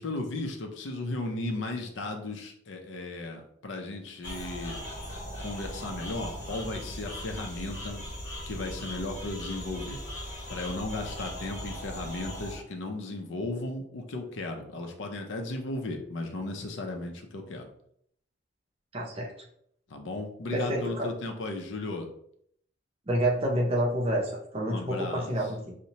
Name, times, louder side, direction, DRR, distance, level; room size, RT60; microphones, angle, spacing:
voice 1, 0.0-4.8 5.4-8.0 8.5-10.0 10.5-17.7 19.9-22.1 24.7-25.3, left 2 dB, 75° left, 4 dB, 0.5 m, -35 dB
sound 1, 4.2-12.6, equal, 60° left, 1.1 m, -39 dB
voice 2, 18.9-19.3 20.5-21.1 23.1-25.7, right 1 dB, 30° right, -1 dB, 0.5 m, -28 dB
2.8 x 2.1 x 2.8 m, 0.67 s
head